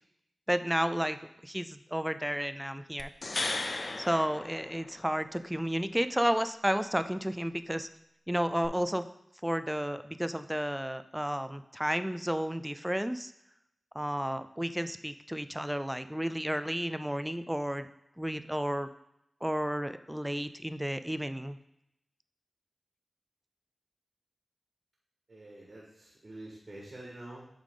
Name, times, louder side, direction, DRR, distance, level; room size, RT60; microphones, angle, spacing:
voice 1, 0.5-1.2 1.4-3.1 4.0-7.9 8.3-9.1 9.4-13.3 14.0-17.9 18.2-18.9 19.4-21.6, equal, 5° right, 11 dB, 0.4 m, -32 dB
sound 1, 3.0-5.3 8.6-8.7, left 2 dB, 55° left, 0.5 m, -36 dB
voice 2, 25.3-27.4, right 1 dB, 50° right, -5 dB, 1.7 m, -47 dB
8.1 x 3.6 x 3.8 m, 0.81 s
cardioid pair, 50°, 0 cm